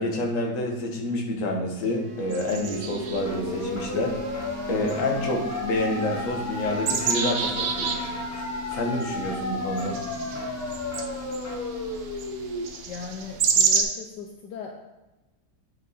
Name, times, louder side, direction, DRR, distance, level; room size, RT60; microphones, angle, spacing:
voice 1, 0.0-4.2 4.7-8.1 8.7-10.0, left 1 dB, 50° left, 0 dB, 1.5 m, -28 dB
Bowed string instrument, 1.9-7.1, right 5 dB, 60° right, 1.3 m, -44 dB
sound 1, 2.3-13.8, right 6 dB, 75° right, 1.5 m, -31 dB
sound 2, 2.6-12.6, left 2 dB, 25° left, 0.3 m, -33 dB
voice 2, 12.9-14.7, left 5 dB, 75° left, 2 dB, 1.3 m, -38 dB
9.8 x 4.5 x 4.2 m, 1.1 s
omnidirectional pair, 1.9 m